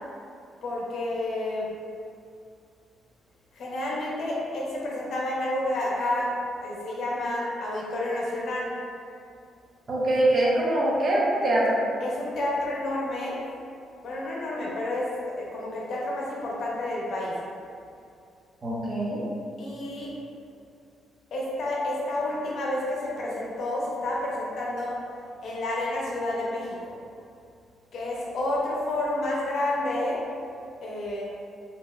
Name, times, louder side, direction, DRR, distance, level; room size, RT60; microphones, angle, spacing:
voice 1, 0.6-1.7 3.5-6.3 6.6-8.7 12.0-13.4 14.0-17.3 19.6-20.1 21.3-24.9 25.4-26.9 27.9-30.2 30.8-31.2, left 1 dB, 65° left, -4 dB, 0.7 m, -30 dB
voice 2, 9.9-11.8 18.6-19.2, right 1 dB, 35° right, -5 dB, 0.7 m, -23 dB
3.2 x 2.7 x 2.2 m, 2.4 s
cardioid pair, 90°, 0 cm